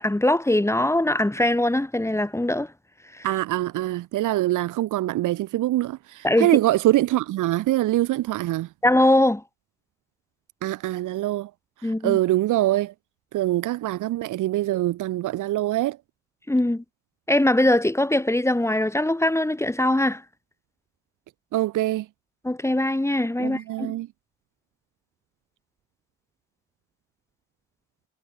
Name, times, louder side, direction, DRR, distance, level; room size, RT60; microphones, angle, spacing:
voice 1, 0.0-2.7 6.2-6.5 8.8-9.4 11.8-12.2 16.5-16.8 17.3-20.2 22.4-23.9, left 1 dB, 10° left, 2.5 m, -21 dB
voice 2, 3.2-8.7 10.6-11.5 12.0-12.9 13.3-16.0 21.5-22.0 23.4-24.1, right 15 dB, 85° right, 2.4 m, -24 dB
cardioid pair, 90°, 30 cm